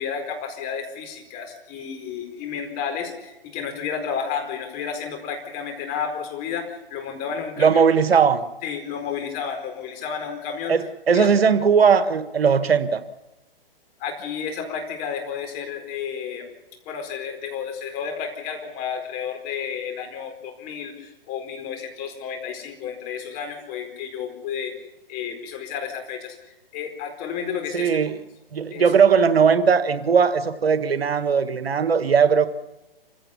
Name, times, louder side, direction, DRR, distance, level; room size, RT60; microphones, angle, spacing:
voice 1, 0.0-7.8 8.6-10.8 11.1-11.3 14.0-16.5 16.9-24.7 25.1-26.4 26.7-27.9 28.7-28.9, left 7 dB, 30° left, 4.5 m, -31 dB
voice 2, 7.6-8.4 10.7-13.0 27.7-28.2 28.5-32.5, right 6 dB, 80° right, 1.5 m, -18 dB
27.5 x 16.0 x 7.0 m
hypercardioid pair, 135°, 30 cm